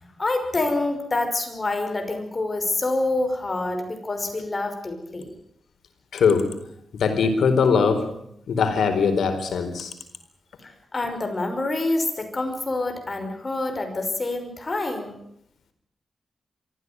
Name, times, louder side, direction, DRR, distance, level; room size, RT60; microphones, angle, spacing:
voice 1, 0.2-5.3 10.6-15.2, left 2 dB, 30° left, 5 dB, 5.6 m, -27 dB
voice 2, 6.1-6.5 6.9-8.1 8.5-9.9, left 5 dB, 85° left, 8 dB, 4.3 m, -21 dB
23.5 x 15.5 x 9.6 m, 0.73 s
cardioid pair, 100°, 0 cm